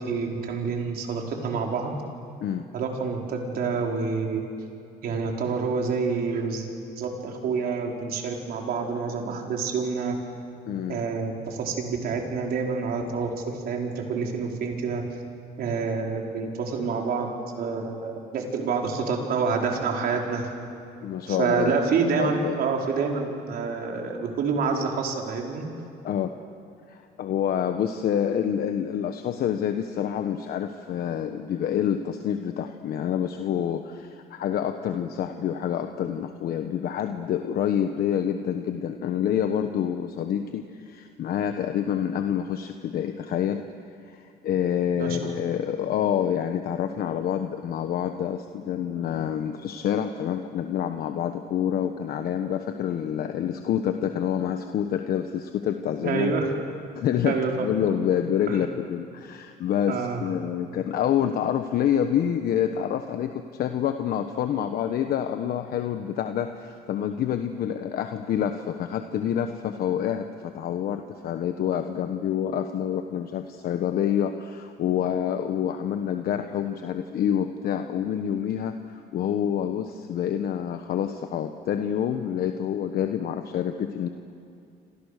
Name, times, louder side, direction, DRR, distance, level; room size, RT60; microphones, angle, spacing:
voice 1, 0.0-1.9 2.7-4.4 5.0-6.7 7.0-10.1 10.9-15.0 15.6-17.3 17.6-20.5 21.3-25.7 45.0-45.3 56.0-56.4 57.2-57.7 58.5-58.6 59.9-60.2, right 5 dB, 65° right, 1 dB, 4.6 m, -27 dB
voice 2, 10.7-11.0 21.0-21.8 22.2-22.6 26.0-26.3 26.9-43.6 44.0-56.3 56.9-84.1, left 9 dB, 65° left, 7 dB, 1.2 m, -27 dB
28.5 x 27.0 x 6.7 m, 2.6 s
cardioid pair, 110°, 17 cm